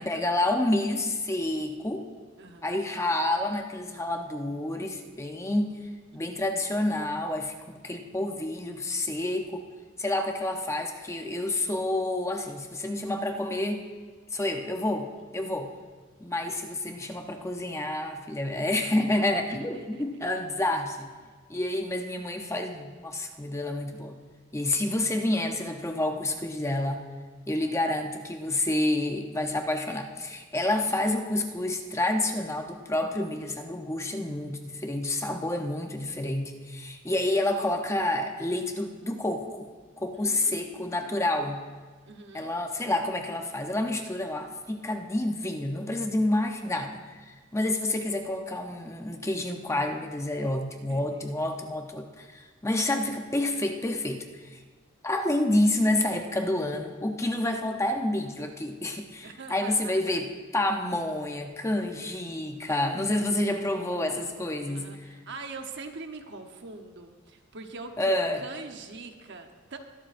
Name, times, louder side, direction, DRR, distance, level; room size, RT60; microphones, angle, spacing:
voice 1, 0.0-2.1 2.6-5.8 6.1-9.6 10.0-13.9 14.3-15.7 16.2-21.1 21.5-24.2 24.5-27.0 27.5-39.7 40.0-41.6 42.3-47.0 47.3-54.6 55.0-65.1 68.0-68.4, left 1 dB, 15° left, 4 dB, 0.8 m, -29 dB
voice 2, 2.4-2.9 6.1-6.4 15.2-15.4 19.1-19.5 19.7-20.0 30.5-30.9 34.0-34.4 40.1-41.2 42.1-42.5 50.9-51.2 59.2-60.2 64.7-69.8, right 3 dB, 55° right, 5 dB, 1.0 m, -44 dB
21.5 x 11.5 x 2.6 m, 1.5 s
head